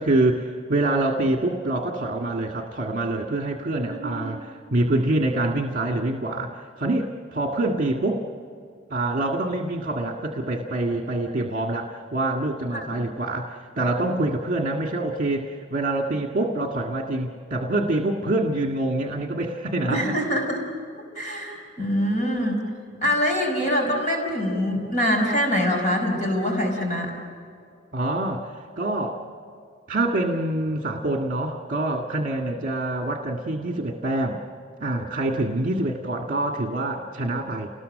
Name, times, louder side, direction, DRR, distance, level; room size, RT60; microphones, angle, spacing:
voice 1, 0.0-8.3 8.9-20.1 22.9-23.1 27.9-29.2 29.9-34.4 34.8-37.7, right 2 dB, 45° right, 2 dB, 1.7 m, -26 dB
voice 2, 3.8-4.3 12.7-13.0 19.9-20.7 21.1-22.6 23.0-27.1, equal, 40° left, 1 dB, 4.9 m, -24 dB
29.5 x 20.5 x 6.4 m, 2.4 s
head